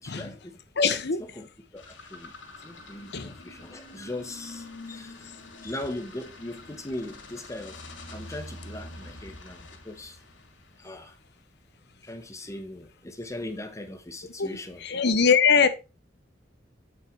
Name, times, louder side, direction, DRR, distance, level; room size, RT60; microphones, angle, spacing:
voice 1, 0.0-0.6 1.4-1.5 1.7-2.3 2.6-5.2 5.6-7.8 8.1-10.2 10.8-11.1 12.0-14.8, left 1 dB, 15° left, 0.9 m, -39 dB
voice 2, 0.8-1.2 3.1-3.3 14.4-15.7, left 6 dB, 65° left, 0.9 m, -22 dB
sound 1, 1.8-11.3, left 2 dB, 90° left, 2.2 m, -46 dB
8.4 x 4.5 x 4.5 m
head